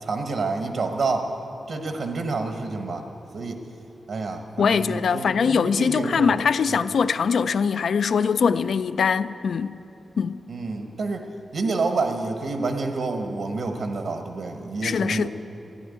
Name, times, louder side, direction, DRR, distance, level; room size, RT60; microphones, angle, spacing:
voice 1, 0.0-1.3 1.7-3.1 3.3-3.6 4.1-6.4 10.5-11.3 11.5-15.3, right 3 dB, 65° right, 1.0 m, -28 dB
voice 2, 4.6-9.8 10.2-10.4 14.8-15.3, left 6 dB, 65° left, 0.4 m, -22 dB
15.0 x 11.5 x 8.3 m
wide cardioid pair, 165°, 0 cm